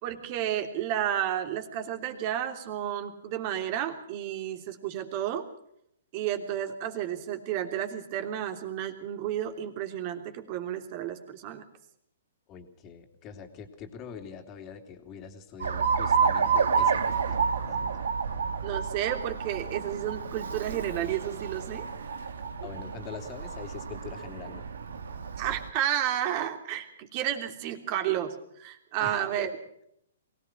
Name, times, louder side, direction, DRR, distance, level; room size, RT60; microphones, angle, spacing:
voice 1, 0.0-5.5 6.1-11.6 18.6-21.9 25.4-29.5, right 11 dB, 40° right, 6 dB, 3.3 m, -31 dB
voice 2, 12.5-18.1 22.6-24.6 29.0-29.5, left 6 dB, 30° left, 6 dB, 3.2 m, -44 dB
Alarm, 15.6-25.7, right 6 dB, 80° right, 2.1 m, -30 dB
23.0 x 18.0 x 6.1 m, 0.72 s
hypercardioid pair, 130°, 0 cm